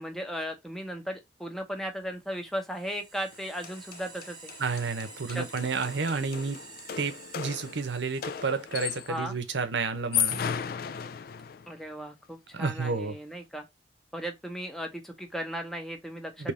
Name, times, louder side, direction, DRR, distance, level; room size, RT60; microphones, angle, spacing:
voice 1, 0.0-4.5 5.3-5.5 9.1-9.3 11.7-13.6 14.1-16.3, equal, ahead, 0.8 m, -36 dB
sound 1, 2.3-9.1, right 4 dB, 25° right, 1.1 m, -49 dB
sound 2, 3.3-3.4 3.6-9.3 9.9-11.7, left 8 dB, 55° left, 0.3 m, -35 dB
voice 2, 4.6-6.6 7.0-10.4 12.5-13.2 16.4-16.5, right 4 dB, 80° right, 0.8 m, -31 dB
3.5 x 3.0 x 4.1 m
head